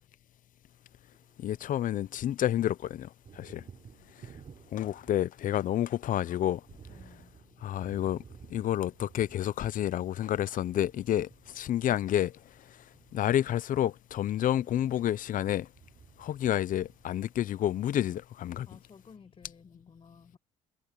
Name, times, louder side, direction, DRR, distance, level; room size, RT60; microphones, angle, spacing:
Thunder, 1.0-2.2 2.5-17.7, right 7 dB, 40° right, 4.7 m, -55 dB
voice 1, 1.4-3.1 3.4-3.6 4.7-6.6 7.6-8.2 8.5-11.3 11.5-12.3 13.1-15.7 16.2-18.7, left 11 dB, 50° left, 0.7 m, -29 dB
voice 2, 6.9-7.3 18.7-20.4, left 5 dB, 30° left, 5.9 m, -54 dB
cardioid pair, 110°, 17 cm